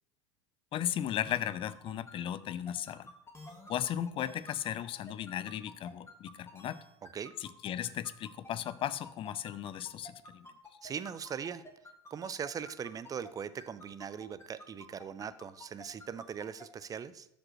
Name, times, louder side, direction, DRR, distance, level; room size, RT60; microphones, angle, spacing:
voice 1, 0.7-3.1 3.7-6.8 7.4-10.5, left 11 dB, 40° left, 17 dB, 0.5 m, -36 dB
sound 1, 1.2-13.3 13.6-16.6, left 1 dB, 20° left, 1.5 m, -51 dB
voice 2, 10.8-11.6 12.1-17.3, right 7 dB, 25° right, 15 dB, 0.5 m, -40 dB
13.0 x 5.1 x 3.1 m, 0.82 s
hypercardioid pair, 85°, 14 cm